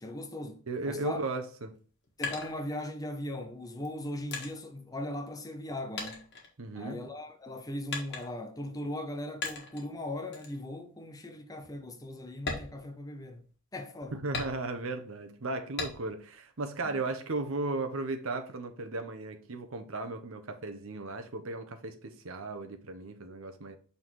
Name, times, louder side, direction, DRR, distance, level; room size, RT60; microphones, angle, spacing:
voice 1, 0.0-1.2 2.2-6.3 6.7-13.4 13.7-14.2 16.8-17.0, left 1 dB, 15° left, 0.7 m, -39 dB
voice 2, 0.7-1.7 6.6-7.0 14.1-23.8, right 3 dB, 65° right, 0.9 m, -36 dB
sound 1, 1.7-3.2 3.8-5.7 6.0-7.1 7.9-8.6 9.4-9.9 10.3-10.6 11.0-11.1 11.6-11.7 12.3-13.5 14.3-15.0 15.8-16.3 16.7-17.6, left 4 dB, 50° left, 1.7 m, -39 dB
5.6 x 4.1 x 4.5 m
head